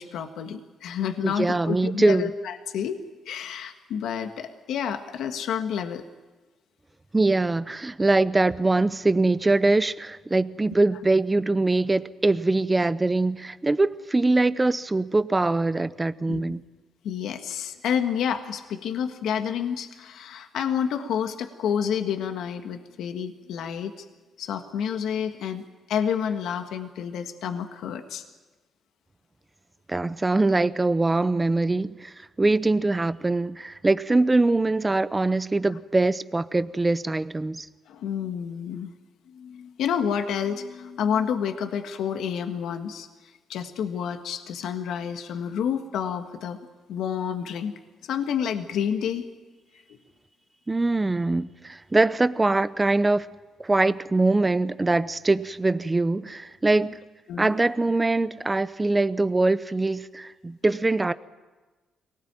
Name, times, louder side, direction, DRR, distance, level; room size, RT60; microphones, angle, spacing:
voice 1, 0.0-6.0 16.3-16.4 17.0-24.1 24.4-25.6 25.9-28.2 37.9-38.9 39.3-43.1 43.5-46.6 46.9-47.7 48.0-49.3 57.3-57.5, left 8 dB, 80° left, 1.6 m, -29 dB
voice 2, 1.2-2.3 7.1-16.6 29.9-37.7 50.7-53.3 53.6-57.0 57.4-61.1, right 2 dB, 20° right, 0.7 m, -23 dB
23.5 x 18.5 x 9.0 m
cardioid pair, 90°, 0 cm